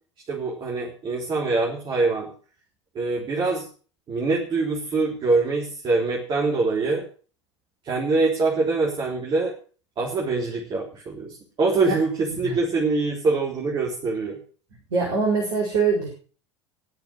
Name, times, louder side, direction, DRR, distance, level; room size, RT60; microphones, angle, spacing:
voice 1, 0.3-2.3 2.9-3.7 4.1-7.0 7.8-9.5 10.0-14.4, right 3 dB, 30° right, -3 dB, 3.9 m, -24 dB
voice 2, 14.9-16.1, right 4 dB, 65° right, -1 dB, 4.7 m, -23 dB
20.0 x 6.9 x 6.3 m, 0.40 s
figure-of-eight pair, 75°, 15 cm